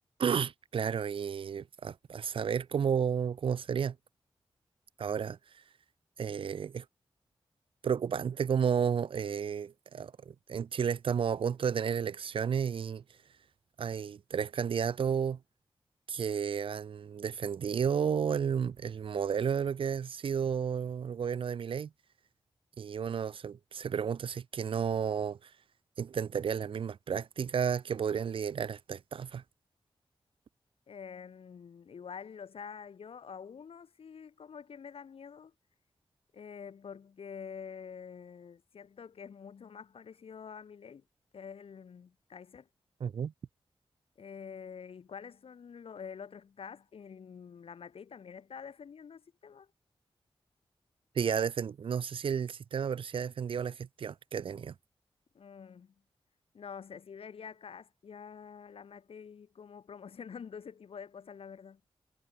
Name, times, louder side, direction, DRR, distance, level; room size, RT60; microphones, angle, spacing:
voice 1, 0.2-4.0 5.0-5.4 6.2-6.8 7.8-13.0 13.8-15.4 16.1-21.9 22.8-25.4 26.0-29.4 43.0-43.3 51.2-54.7, right 7 dB, 65° right, 0.4 m, -32 dB
voice 2, 30.9-35.5 36.3-41.0 41.3-42.7 44.2-49.7 55.4-55.9 56.5-61.8, left 6 dB, 80° left, 1.7 m, -47 dB
wide cardioid pair, 100°, 10 cm